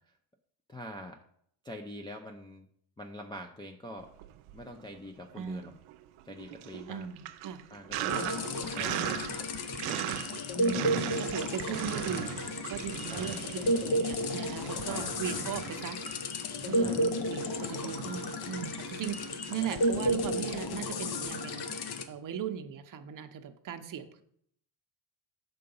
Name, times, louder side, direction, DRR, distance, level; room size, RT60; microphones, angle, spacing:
voice 1, 0.7-1.2 1.6-2.7 3.0-4.1 4.5-5.7 6.3-7.1 7.7-8.3 8.7-9.5 13.1-13.4 14.9-15.1 16.8-17.1, left 1 dB, 10° left, 1 dB, 0.3 m, -44 dB
Sink (filling or washing), 4.1-5.0 5.3-21.4, right 13 dB, 90° right, 0.6 m, -40 dB
voice 2, 5.3-5.7 6.9-7.6 8.0-8.3 8.5-8.7 10.5-16.0 16.7-24.2, right 8 dB, 40° right, 8 dB, 0.7 m, -39 dB
sound 1, 8.1-22.0, left 1 dB, 55° left, 0.7 m, -33 dB
6.8 x 3.8 x 5.3 m, 0.68 s
cardioid pair, 115°, 48 cm